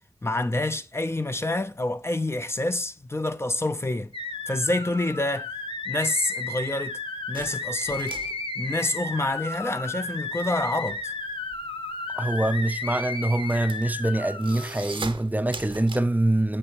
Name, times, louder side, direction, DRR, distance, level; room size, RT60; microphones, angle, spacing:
voice 1, 0.2-4.1 4.5-5.5 5.9-7.0 7.3-8.2 8.6-11.1, left 2 dB, 30° left, 0.6 m, -27 dB
sound 1, 4.1-14.8, left 3 dB, 70° left, 1.3 m, -33 dB
sound 2, 7.3-9.6 9.9-16.0, right 4 dB, 70° right, 0.9 m, -41 dB
voice 2, 12.1-16.6, right 1 dB, 20° right, 0.6 m, -24 dB
7.9 x 6.6 x 3.0 m
wide cardioid pair, 60°, 9 cm